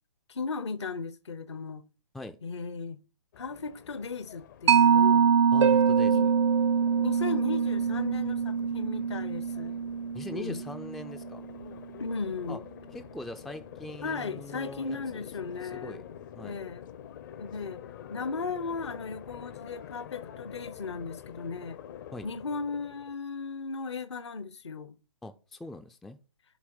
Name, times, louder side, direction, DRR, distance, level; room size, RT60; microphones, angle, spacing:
voice 1, 0.3-1.8 2.4-3.0 3.4-5.4 6.1-6.3 7.0-9.8 10.3-10.6 12.0-12.6 14.0-16.0 16.4-16.8 17.4-17.8 18.1-21.8 22.2-25.0, left 4 dB, 65° left, 0.9 m, -36 dB
sound 1, 3.3-23.1, left 9 dB, 40° left, 0.6 m, -47 dB
Mallet percussion, 4.7-11.7, right 7 dB, 65° right, 0.5 m, -25 dB
voice 2, 5.5-6.3 10.1-11.4 12.5-12.6 12.9-16.0 16.3-16.6 22.1-22.3 25.2-26.2, left 1 dB, ahead, 0.3 m, -42 dB
Harp, 5.6-8.1 11.6-11.7, right 6 dB, 85° right, 1.0 m, -30 dB
7.1 x 4.5 x 6.0 m
figure-of-eight pair, 130°, 15 cm